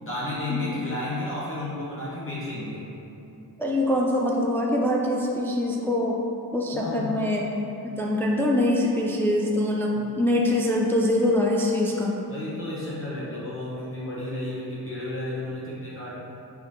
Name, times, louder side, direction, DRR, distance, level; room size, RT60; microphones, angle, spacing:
voice 1, 0.0-2.9 6.7-7.2 12.3-16.1, left 2 dB, 30° left, -8 dB, 0.9 m, -32 dB
voice 2, 3.6-6.2 6.5-7.5 7.8-12.1, left 1 dB, 5° left, -2 dB, 0.3 m, -24 dB
4.5 x 3.6 x 2.6 m, 3.0 s
cardioid pair, 70°, 41 cm